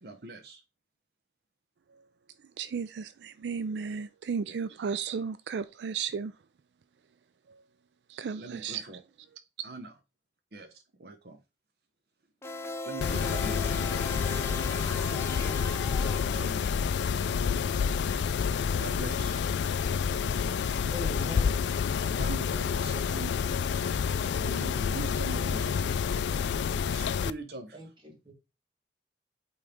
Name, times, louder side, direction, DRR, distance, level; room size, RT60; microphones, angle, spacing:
voice 1, 0.0-0.6 4.5-4.6 8.3-9.0 9.6-9.9 10.5-10.7 11.0-11.4 12.9-13.7 16.3-16.8 18.8-19.5 22.0-23.5 24.3-25.8 26.8-27.8, right 2 dB, 60° right, 0.7 m, -42 dB
voice 2, 2.6-6.3 7.5-7.6 8.1-8.9 9.3-9.7, right 6 dB, 80° right, 0.4 m, -35 dB
sound 1, 12.4-16.8, left 2 dB, 15° left, 0.4 m, -38 dB
Mechanisms, 13.0-27.3, left 6 dB, 80° left, 0.3 m, -29 dB
voice 3, 20.9-21.6 25.3-25.7 27.7-28.3, equal, 25° right, 1.6 m, -43 dB
8.5 x 3.2 x 3.5 m
head